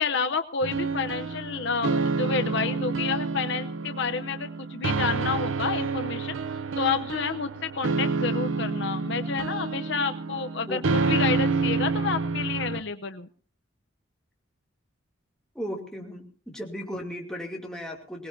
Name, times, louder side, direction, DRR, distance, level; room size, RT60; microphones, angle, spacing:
voice 1, 0.0-6.4 6.8-13.3, left 5 dB, 60° left, 8 dB, 0.8 m, -29 dB
sound 1, 0.6-12.8, right 4 dB, 75° right, 0.6 m, -28 dB
voice 2, 15.5-18.3, equal, 5° left, -1 dB, 2.6 m, -36 dB
22.5 x 19.0 x 2.7 m, 0.42 s
head